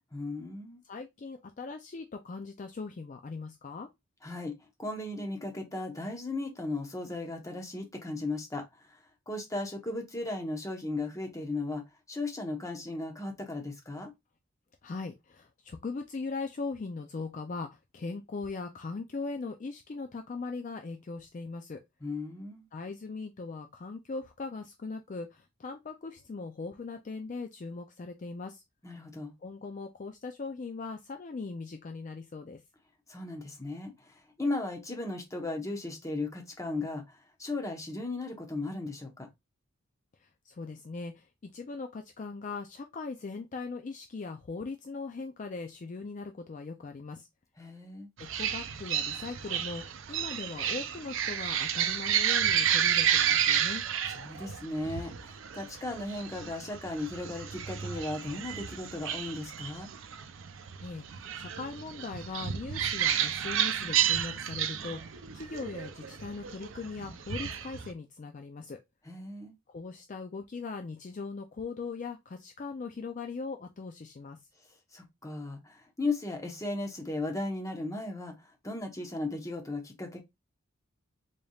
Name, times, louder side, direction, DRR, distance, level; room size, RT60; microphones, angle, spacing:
voice 1, 0.1-0.8 4.2-4.5 4.8-14.1 22.0-22.7 28.8-29.3 33.1-39.3 47.6-48.1 54.1-59.9 69.1-69.5 74.9-80.2, left 2 dB, 15° left, 0.9 m, -36 dB
voice 2, 0.8-3.9 14.8-21.8 22.7-28.6 29.4-32.6 40.2-47.3 48.2-53.9 60.8-68.8 69.7-74.4, left 4 dB, 40° left, 0.4 m, -40 dB
sound 1, 48.2-67.9, right 9 dB, 70° right, 0.5 m, -31 dB
4.0 x 3.4 x 2.3 m
head